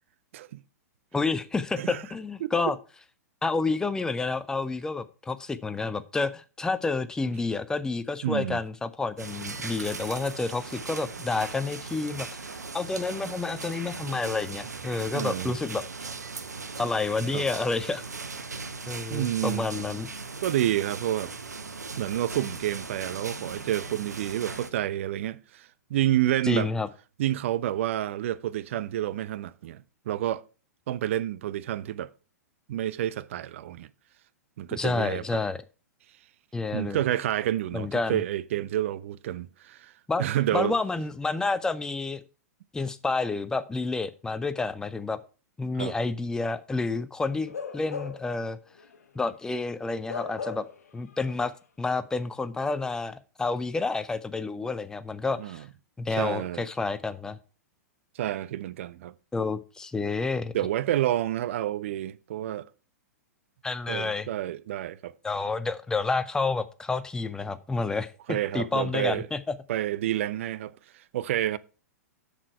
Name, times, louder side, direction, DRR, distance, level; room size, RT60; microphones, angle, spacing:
voice 1, 1.1-2.8 3.4-15.8 16.8-18.0 18.9-20.1 26.4-26.9 34.7-35.6 36.5-37.0 37.7-38.2 40.1-40.2 40.5-42.2 42.7-45.2 45.6-48.6 49.1-50.7 50.9-51.5 51.8-55.6 56.0-57.4 59.3-60.5 63.6-64.3 65.2-69.6, left 3 dB, 5° left, 0.5 m, -29 dB
voice 2, 8.2-8.6 15.1-15.6 17.3-17.5 19.1-19.6 20.4-21.3 22.0-26.7 27.2-30.4 30.9-32.1 32.7-33.9 34.6-35.4 36.7-39.9 40.2-40.8 45.8-46.0 55.4-55.7 56.2-56.7 58.2-59.1 60.5-62.7 63.9-65.1 68.3-69.3 69.7-71.6, right 12 dB, 50° right, 0.5 m, -29 dB
sound 1, 9.2-24.7, right 4 dB, 75° right, 0.9 m, -38 dB
Bark / Livestock farm animals working animals, 47.4-48.4 48.8-48.9 50.1-50.9 51.2-51.4, left 5 dB, 65° left, 1.2 m, -37 dB
7.4 x 6.6 x 4.6 m
figure-of-eight pair, 105°, 9 cm